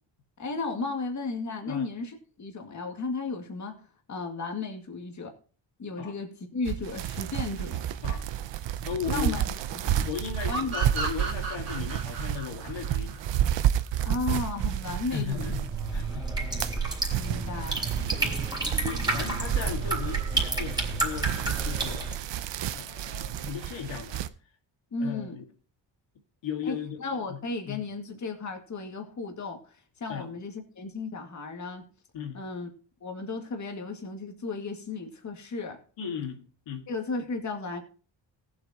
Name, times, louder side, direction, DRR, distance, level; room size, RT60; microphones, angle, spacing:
voice 1, 0.4-5.3 5.8-7.8 9.1-9.5 9.7-10.1 10.5-10.8 14.0-15.6 17.1-17.9 24.9-25.4 26.7-26.8 27.0-31.9 32.3-32.7 33.0-35.8 36.9-37.8, left 3 dB, 40° left, 2.1 m, -34 dB
sound 1, 6.6-16.0 16.4-24.3, right 11 dB, 70° right, 0.8 m, -31 dB
voice 2, 8.9-9.4 10.0-13.2 15.1-16.3 18.2-18.3 18.8-21.3 21.6-22.1 22.7-24.3 25.0-25.4 26.4-27.0 27.3-27.9 30.1-30.3 32.1-32.4 36.0-36.4 36.7-36.9, left 8 dB, 85° left, 2.1 m, -36 dB
sound 2, 10.5-13.9, right 3 dB, 35° right, 3.0 m, -34 dB
sound 3, 15.3-22.2, right 3 dB, 10° right, 3.1 m, -30 dB
18.5 x 8.0 x 2.9 m
cardioid pair, 135°, 44 cm